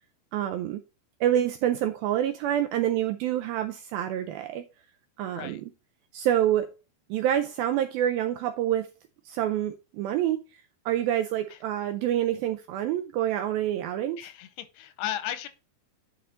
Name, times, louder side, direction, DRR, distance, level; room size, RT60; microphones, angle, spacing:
voice 1, 0.3-0.8 1.2-4.7 5.2-5.7 6.1-6.7 7.1-8.9 9.3-14.2, right 11 dB, 85° right, 2.1 m, -27 dB
voice 2, 14.2-15.5, left 11 dB, 90° left, 2.7 m, -35 dB
10.5 x 4.5 x 3.9 m
omnidirectional pair, 4.8 m